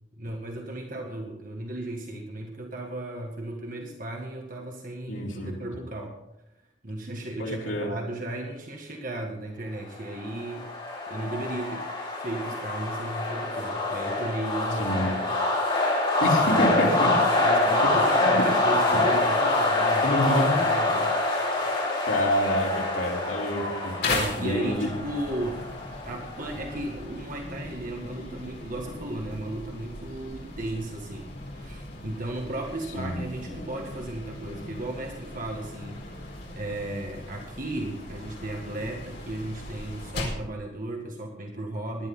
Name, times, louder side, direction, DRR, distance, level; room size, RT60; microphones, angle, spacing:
voice 1, 0.2-6.2 6.8-10.7 11.1-11.9 12.2-15.3 16.4-20.1 20.4-21.8 22.6-22.8 24.1-25.6 26.0-42.1, right 1 dB, 45° right, 1 dB, 1.8 m, -35 dB
voice 2, 5.1-5.5 7.4-7.9 14.8-15.1 16.2-17.1 18.2-18.4 20.0-20.6 22.1-23.9 24.4-24.9 32.9-33.2, equal, 85° left, -3 dB, 3.8 m, -27 dB
sound 1, 10.1-26.7, left 2 dB, 30° left, 5.6 m, -26 dB
sound 2, 24.0-40.5, left 2 dB, 55° left, 4.7 m, -38 dB
19.0 x 12.0 x 3.9 m, 0.86 s
head